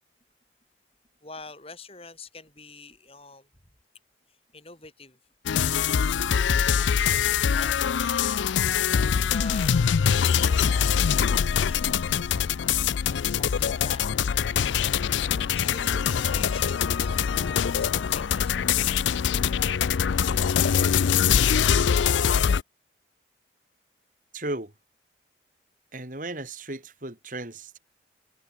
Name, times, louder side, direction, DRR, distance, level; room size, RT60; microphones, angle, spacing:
voice 1, 1.2-3.7 4.3-5.2 5.6-5.9 6.8-8.6 9.3-12.5 13.4-14.1 15.5-19.0, left 3 dB, 30° left, 7.1 m, -45 dB
sound 1, 5.5-22.6, left 7 dB, 90° left, 0.4 m, -23 dB
voice 2, 24.3-24.7 25.9-27.8, right 2 dB, 45° right, 2.8 m, -35 dB
head